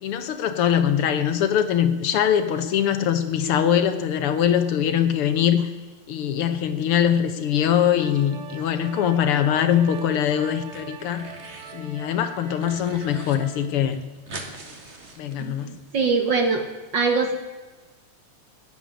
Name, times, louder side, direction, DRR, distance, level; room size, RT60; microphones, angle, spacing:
voice 1, 0.0-5.7 6.1-11.2 11.7-14.0 15.2-15.7, left 9 dB, 70° left, 9 dB, 1.4 m, -22 dB
sound 1, 8.0-13.6, right 7 dB, 85° right, 3.0 m, -42 dB
sound 2, 9.6-10.2 10.5-11.8 12.2-13.4 13.6-13.7 13.9-15.8, right 2 dB, 30° right, 1.3 m, -42 dB
voice 2, 15.4-16.6 16.9-17.3, right 4 dB, 65° right, 5 dB, 1.1 m, -23 dB
15.5 x 9.1 x 9.9 m, 1.3 s
omnidirectional pair, 3.7 m